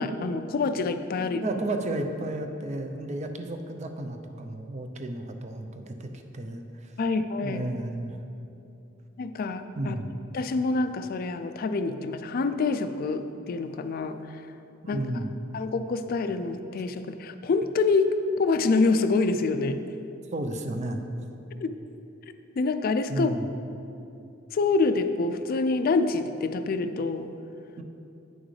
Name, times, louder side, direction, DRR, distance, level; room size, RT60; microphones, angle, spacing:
voice 1, 0.0-1.4 7.0-7.6 9.2-10.0 10.3-14.2 14.9-15.0 15.5-18.1 18.4-19.8 21.6-21.7 22.6-23.3 24.5-27.3, left 3 dB, 50° left, 10 dB, 0.3 m, -26 dB
voice 2, 1.2-6.9 7.4-8.2 9.8-10.1 14.8-15.3 20.3-21.0 23.1-23.5 27.8-27.9, right 1 dB, 35° right, 6 dB, 0.5 m, -33 dB
9.1 x 6.1 x 3.2 m, 2.8 s
head